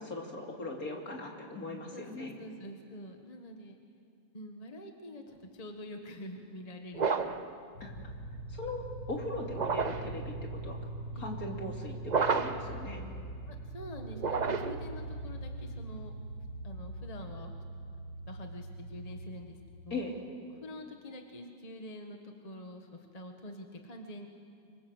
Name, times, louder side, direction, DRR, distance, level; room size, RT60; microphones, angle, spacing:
voice 1, 0.0-2.3 7.8-7.9 8.5-8.8 9.1-10.8 11.2-13.1 19.9-20.2, left 2 dB, 45° left, 0 dB, 3.4 m, -39 dB
voice 2, 1.9-3.8 4.3-7.5 11.1-11.3 13.5-16.1 16.6-17.6 17.9-20.0 20.6-24.3, left 1 dB, 20° left, 3 dB, 1.4 m, -46 dB
sound 1, 6.9-7.5 9.5-10.1 12.0-12.7 14.1-14.9, right 5 dB, 75° right, 0.4 m, -30 dB
sound 2, 7.7-19.4, right 1 dB, 85° left, 4.7 m, -42 dB
26.5 x 25.5 x 8.0 m, 2.3 s
omnidirectional pair, 2.2 m